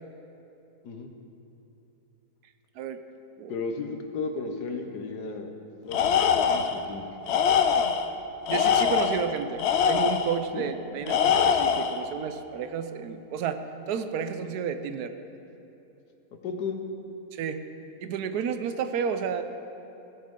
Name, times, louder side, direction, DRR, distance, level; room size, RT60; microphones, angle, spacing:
voice 1, 3.5-5.5 5.8-7.1 10.5-10.6 16.4-16.8, left 4 dB, 85° left, 4 dB, 1.6 m, -34 dB
Tools, 5.9-6.8 7.3-8.1 8.5-10.4 11.1-12.0, left 7 dB, 65° left, 0.6 m, -23 dB
voice 2, 8.5-15.2 17.3-17.6 18.0-19.4, right 7 dB, 75° right, 9 dB, 1.1 m, -31 dB
16.5 x 9.3 x 3.7 m, 2.9 s
omnidirectional pair, 1.7 m